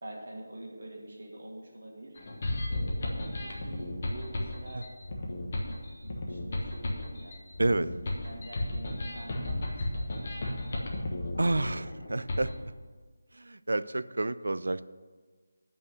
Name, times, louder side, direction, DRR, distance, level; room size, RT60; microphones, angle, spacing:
voice 1, 0.0-2.2 2.7-4.9 5.2-7.3 8.2-10.6, right 1 dB, 55° right, -1 dB, 2.5 m, -46 dB
sound 1, 2.2-12.5, left 1 dB, 35° left, 1.3 m, -34 dB
voice 2, 11.4-12.5 13.3-14.8, right 2 dB, 80° right, 15 dB, 0.4 m, -29 dB
8.9 x 5.5 x 8.0 m, 1.4 s
figure-of-eight pair, 175°, 0 cm